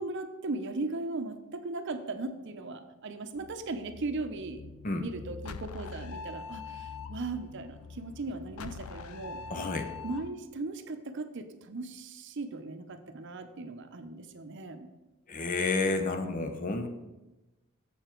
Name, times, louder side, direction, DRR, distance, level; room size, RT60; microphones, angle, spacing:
voice 1, 0.0-9.4 10.0-14.9, right 3 dB, 55° right, 9 dB, 0.6 m, -38 dB
sound 1, 3.4-10.3, left 5 dB, 75° left, 0.5 m, -44 dB
voice 2, 9.5-9.9 15.3-17.0, left 3 dB, 40° left, 6 dB, 0.7 m, -30 dB
7.1 x 6.8 x 4.5 m, 1.0 s
head